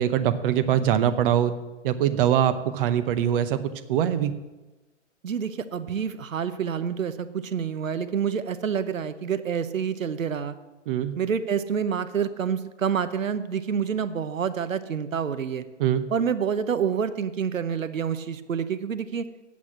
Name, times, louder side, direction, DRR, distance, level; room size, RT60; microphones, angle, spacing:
voice 1, 0.0-1.5 1.8-3.6 3.9-4.3 10.9-11.1 15.8-16.0, right 10 dB, 45° right, 12 dB, 0.8 m, -22 dB
voice 2, 5.2-10.6 11.2-15.6 16.1-19.3, right 7 dB, 90° right, 12 dB, 0.9 m, -28 dB
8.4 x 8.4 x 7.2 m, 1.1 s
hypercardioid pair, 130°, 38 cm